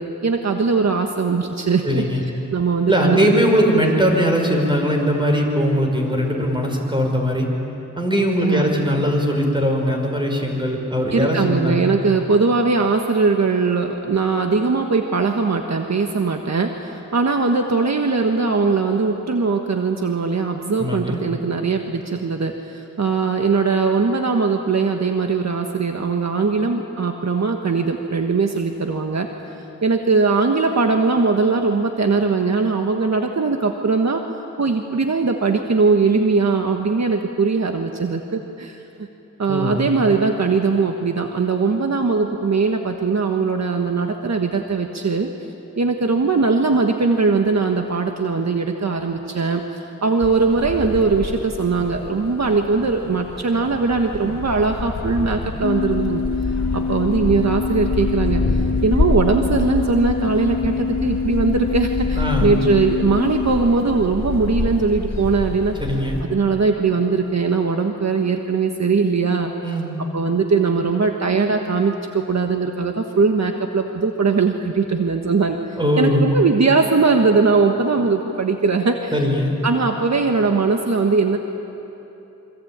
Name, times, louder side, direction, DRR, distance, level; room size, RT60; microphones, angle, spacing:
voice 1, 0.0-2.0 2.5-3.2 8.4-8.7 11.1-29.6 29.8-34.2 34.6-38.8 39.4-45.3 45.8-56.2 56.7-65.8 66.2-69.5 70.0-79.1 79.6-81.4, right 4 dB, 60° right, 4 dB, 1.5 m, -20 dB
voice 2, 1.8-2.2 2.9-7.5 8.0-12.0 20.8-21.2 39.5-39.9 62.2-62.5 65.8-66.2 69.6-70.0 75.8-76.3 79.1-79.6, equal, 15° right, 1 dB, 5.4 m, -20 dB
sound 1, 50.2-66.2, left 3 dB, 55° left, 3.7 m, -27 dB
sound 2, 55.6-63.5, left 5 dB, 75° left, 2.0 m, -25 dB
27.0 x 24.0 x 8.9 m, 3.0 s
wide cardioid pair, 85°, 31 cm